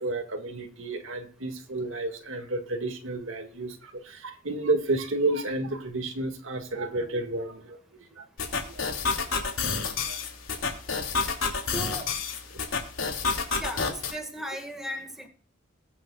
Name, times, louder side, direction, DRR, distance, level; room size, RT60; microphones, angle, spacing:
voice 1, 0.0-8.3 8.7-9.0 10.1-10.2, right 2 dB, 75° right, 5 dB, 2.0 m, -31 dB
sound 1, 8.4-14.1, left 4 dB, 80° left, 2.9 m, -29 dB
voice 2, 11.7-12.1 13.6-15.3, equal, ahead, 2 dB, 1.8 m, -36 dB
22.0 x 7.6 x 2.4 m, 0.43 s
head